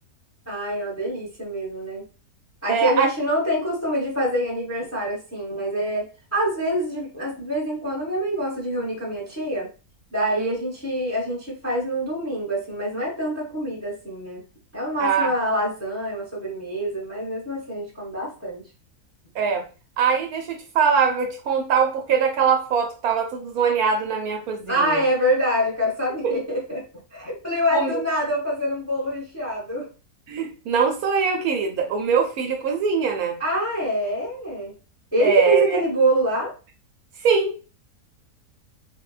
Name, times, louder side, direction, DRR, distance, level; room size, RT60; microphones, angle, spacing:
voice 1, 0.5-2.1 2.6-9.7 10.1-14.4 14.7-18.6 24.7-26.8 27.1-29.9 33.4-34.8 35.1-36.5, equal, 15° left, -4 dB, 0.7 m, -25 dB
voice 2, 2.7-3.1 10.4-10.5 15.0-15.3 19.3-19.6 20.0-25.0 26.2-26.3 27.7-27.9 30.3-33.4 35.2-35.8 37.2-37.5, right 6 dB, 70° right, 2 dB, 1.0 m, -22 dB
3.6 x 2.2 x 2.3 m, 0.34 s
omnidirectional pair, 1.7 m